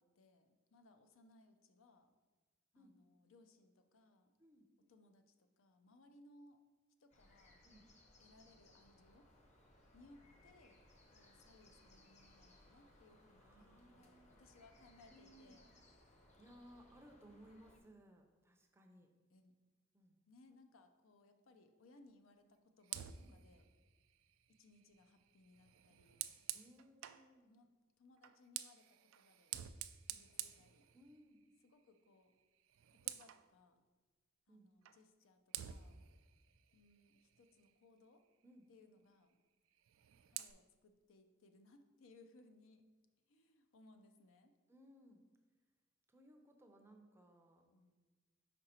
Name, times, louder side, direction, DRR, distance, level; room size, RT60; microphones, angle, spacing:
voice 1, 0.0-2.1 2.7-4.3 4.9-6.6 7.0-7.6 8.2-9.3 9.9-10.8 11.1-15.8 19.3-19.5 20.3-23.7 24.6-26.3 27.4-29.6 30.0-30.9 31.6-32.3 32.9-33.8 34.5-36.0 36.7-38.3 38.7-39.4 40.3-42.8 43.3-44.5 47.7-47.9, left 2 dB, 75° left, 7 dB, 0.5 m, -66 dB
sound 1, 7.1-17.8, left 1 dB, 35° left, 0.8 m, -66 dB
voice 2, 13.4-14.4 15.1-15.6 16.4-19.1 19.9-20.2 23.2-23.4 26.5-27.5 30.9-31.4 34.5-34.7 38.4-38.7 44.7-45.2 46.1-47.6, equal, 10° right, 3 dB, 0.5 m, -62 dB
Fire, 22.8-27.3 28.2-31.4 31.8-32.1 32.4-33.5 34.9-35.0 35.5-37.8 39.7-40.5, right 13 dB, 75° right, 0.3 m, -50 dB
5.2 x 4.8 x 4.3 m, 1.3 s
head